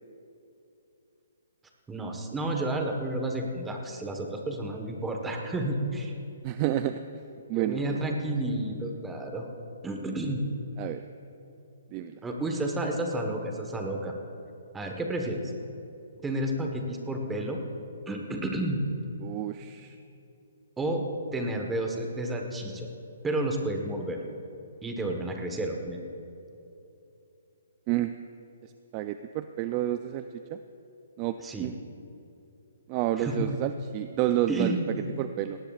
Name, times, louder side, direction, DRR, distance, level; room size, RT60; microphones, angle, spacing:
voice 1, 1.9-6.2 7.5-9.5 9.8-10.4 12.2-14.1 14.7-15.4 16.2-17.6 18.1-18.8 20.8-21.1 21.3-22.9 23.2-24.2 24.8-26.0 31.4-31.7 33.2-33.5 34.5-35.1, right 1 dB, 10° right, 2 dB, 1.3 m, -31 dB
voice 2, 6.4-7.0 7.5-8.0 10.8-11.0 11.9-12.2 19.2-20.0 27.9-28.1 28.9-30.6 31.2-31.7 32.9-34.7 35.2-35.6, right 13 dB, 30° right, 10 dB, 0.4 m, -30 dB
19.5 x 17.5 x 2.4 m, 2.8 s
hypercardioid pair, 155°, 0 cm